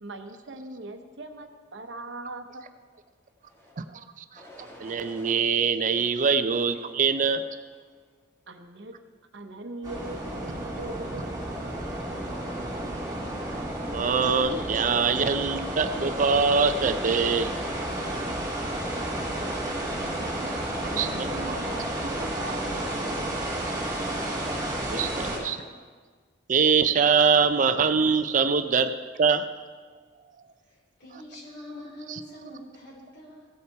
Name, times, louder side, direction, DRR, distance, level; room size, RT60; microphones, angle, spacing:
voice 1, 0.0-2.6 8.5-8.9 9.3-11.8 20.0-20.6 20.9-23.4, right 2 dB, 70° right, 6 dB, 0.9 m, -41 dB
sound 1, 3.4-3.8 4.3-5.4 6.0-7.0 7.6-8.0, left 1 dB, 15° left, 1.6 m, -50 dB
voice 2, 3.8-7.4 13.9-17.5 21.0-21.3 24.1-24.2 24.9-25.6 26.5-28.9 29.2-29.5, right 5 dB, 45° right, 9 dB, 0.4 m, -23 dB
sound 2, 9.8-25.4, right 1 dB, 20° right, 2.3 m, -31 dB
voice 3, 30.6-33.5, left 1 dB, 60° left, -3 dB, 3.4 m, -44 dB
16.5 x 5.6 x 4.6 m, 1.5 s
head